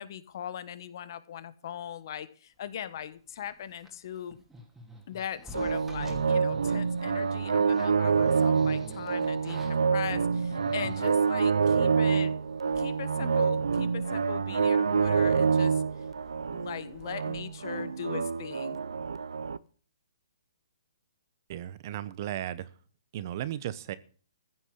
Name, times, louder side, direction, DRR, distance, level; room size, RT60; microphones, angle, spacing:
voice 1, 0.0-4.4 5.1-12.4 12.8-15.8 16.4-18.8, left 9 dB, 50° left, 14 dB, 1.4 m, -40 dB
sound 1, 3.4-11.4 12.1-12.2 12.4-13.1 13.3-13.4 13.9-14.2 14.6-18.1 18.3-18.6, equal, 5° right, 2.7 m, -50 dB
sound 2, 5.5-19.6, right 5 dB, 85° right, 0.7 m, -27 dB
voice 2, 21.5-22.7 23.1-24.0, right 12 dB, 40° right, 16 dB, 1.0 m, -35 dB
15.0 x 7.1 x 8.1 m, 0.41 s
hypercardioid pair, 155°, 3 cm